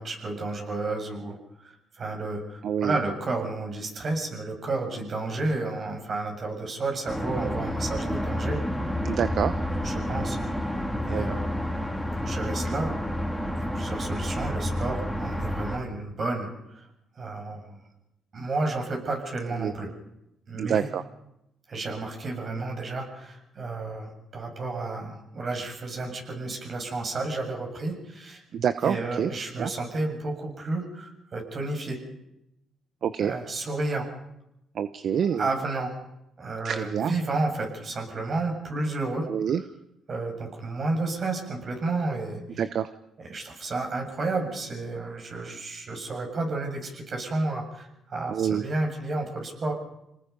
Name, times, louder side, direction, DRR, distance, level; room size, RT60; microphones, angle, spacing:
voice 1, 0.0-1.4 1.6-8.6 9.8-10.4 11.1-11.5 12.1-12.9 13.6-16.9 17.2-17.8 18.3-19.9 20.5-20.9 21.7-28.4 28.8-32.0 33.2-34.1 35.3-35.9 36.4-39.3 40.1-42.6 43.2-49.7, right 2 dB, 45° right, 3 dB, 7.2 m, -31 dB
voice 2, 2.6-3.0 9.0-9.5 11.0-11.2 19.6-19.7 20.6-21.0 28.5-29.3 29.6-29.7 33.0-33.3 34.7-35.5 36.6-37.1 39.3-39.6 42.6-42.9 48.3-48.6, right 8 dB, 65° right, 11 dB, 0.9 m, -27 dB
sound 1, 7.1-15.8, equal, 5° right, 3.8 m, -29 dB
28.0 x 19.5 x 5.4 m, 0.85 s
cardioid pair, 90°, 0 cm